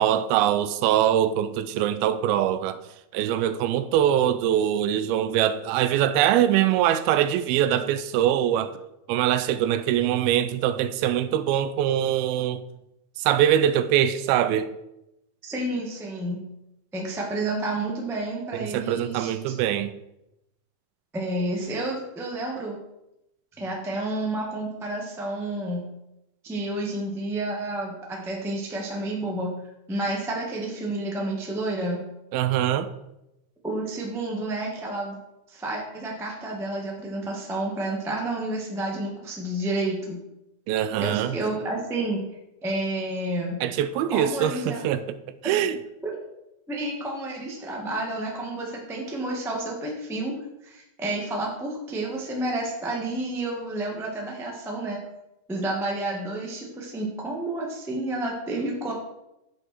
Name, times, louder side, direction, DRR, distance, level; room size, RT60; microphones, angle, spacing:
voice 1, 0.0-2.8 3.1-8.7 9.1-12.6 13.2-14.7 18.5-20.0 32.3-32.9 40.7-41.4 43.6-45.0 45.4-45.8, right 11 dB, 85° right, 2.4 m, -23 dB
voice 2, 15.4-16.4 16.9-19.3 21.1-22.8 23.6-25.8 26.4-29.5 29.9-32.0 33.6-35.2 35.5-40.2 41.0-42.2 42.6-43.6 44.1-44.8 45.4-45.6 46.0-46.1 46.7-50.3 50.6-55.0 55.5-58.9, right 2 dB, 5° right, 0.5 m, -30 dB
8.9 x 7.6 x 4.6 m
omnidirectional pair, 4.3 m